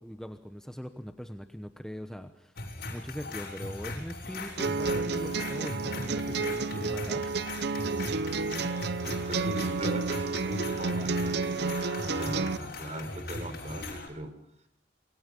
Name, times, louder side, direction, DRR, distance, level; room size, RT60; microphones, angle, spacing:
voice 1, 0.0-2.6 2.9-7.7, equal, 5° left, 7 dB, 1.0 m, -41 dB
sound 1, 2.6-14.1, left 2 dB, 55° left, 6.8 m, -39 dB
sound 2, 4.6-12.6, right 4 dB, 60° right, 0.8 m, -31 dB
voice 2, 9.1-14.3, right 1 dB, 40° right, 8 dB, 4.5 m, -39 dB
28.0 x 23.5 x 5.4 m, 0.73 s
head